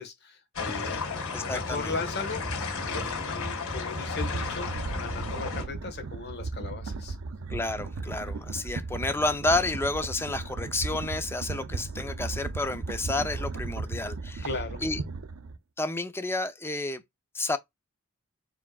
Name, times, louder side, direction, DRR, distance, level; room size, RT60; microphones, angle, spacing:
voice 1, 0.0-4.7 5.0-7.2 14.4-14.8, left 4 dB, 50° left, 1.5 m, -37 dB
sound 1, 0.5-5.6, left 3 dB, 90° left, 2.3 m, -33 dB
voice 2, 1.3-2.0 7.5-14.5 14.8-15.0 15.8-17.0 17.3-17.6, left 2 dB, 10° left, 0.5 m, -30 dB
sound 2, 4.0-15.6, right 3 dB, 70° right, 0.5 m, -36 dB
4.9 x 3.5 x 2.3 m
head